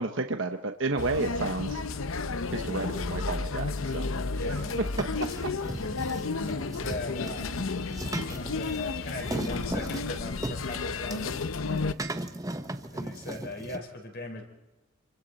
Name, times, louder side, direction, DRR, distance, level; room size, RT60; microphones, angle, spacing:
voice 1, 0.0-1.8 2.5-4.1 4.5-4.7 5.0-5.5, right 3 dB, 65° right, 6 dB, 1.1 m, -32 dB
sound 1, 1.0-11.9, left 3 dB, 75° left, 0.7 m, -32 dB
voice 2, 4.3-4.8 6.3-7.6 8.0-11.4 12.9-14.4, left 2 dB, 50° left, 3 dB, 4.4 m, -39 dB
sound 2, 4.5-13.8, right 1 dB, 15° right, 0.9 m, -38 dB
28.5 x 24.0 x 4.1 m, 1.1 s
head